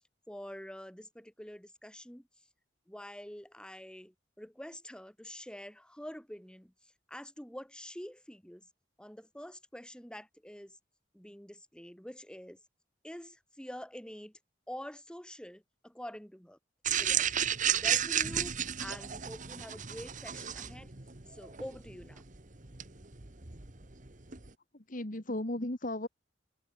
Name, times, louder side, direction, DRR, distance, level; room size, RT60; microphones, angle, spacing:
voice 1, 0.3-2.2 2.9-6.7 7.1-8.7 9.0-10.8 11.1-12.6 13.0-14.3 14.7-16.6 17.0-17.3 17.7-20.9 21.3-22.2, equal, 5° left, 1.8 m, -46 dB
sound 1, 16.8-24.5, right 9 dB, 40° right, 1.6 m, -33 dB
voice 2, 24.7-26.1, left 1 dB, 45° left, 2.1 m, -35 dB
head